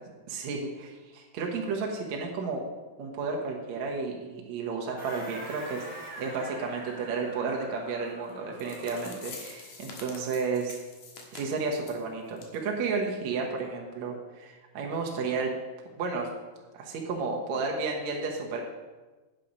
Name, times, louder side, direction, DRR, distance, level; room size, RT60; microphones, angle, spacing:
voice 1, 0.3-2.6 3.0-5.8 6.2-10.8 11.3-15.5 16.0-16.3 16.7-18.6, right 4 dB, 65° right, 0 dB, 1.9 m, -32 dB
sound 1, 5.0-9.4, right 1 dB, 10° right, 1.9 m, -44 dB
sound 2, 8.3-8.4 8.6-12.0 12.4-12.6 12.9-13.0 13.4-13.5, left 4 dB, 60° left, 2.4 m, -46 dB
8.8 x 7.4 x 5.2 m, 1.2 s
omnidirectional pair, 4.3 m